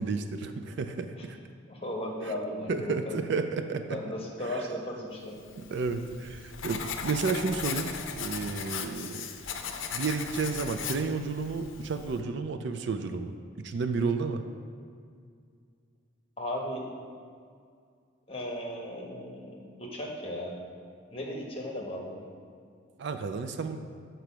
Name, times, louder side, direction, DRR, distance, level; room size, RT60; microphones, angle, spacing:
voice 1, 0.0-1.4 2.3-2.4 2.7-4.0 5.6-9.3 9.9-14.4 23.0-23.8, right 4 dB, 60° right, 8 dB, 0.4 m, -32 dB
voice 2, 1.7-3.2 3.9-5.4 16.4-16.8 18.3-20.5 21.1-22.3, left 1 dB, 30° left, -1 dB, 1.1 m, -36 dB
Writing, 5.5-12.2, left 6 dB, 75° left, 0.6 m, -38 dB
6.6 x 4.5 x 6.0 m, 2.2 s
head